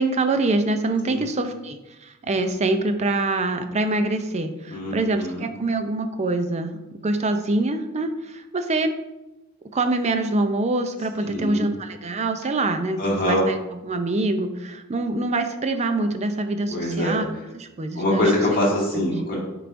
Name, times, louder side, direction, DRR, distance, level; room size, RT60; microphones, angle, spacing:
voice 1, 0.0-8.9 9.7-13.6 13.8-17.3 17.5-18.2 19.0-19.1, right 2 dB, 30° right, 8 dB, 0.5 m, -25 dB
voice 2, 4.7-5.4 11.3-11.7 13.0-13.4 16.7-17.2 17.9-19.4, left 1 dB, 40° left, -5 dB, 2.1 m, -23 dB
7.7 x 4.7 x 2.6 m, 0.99 s
head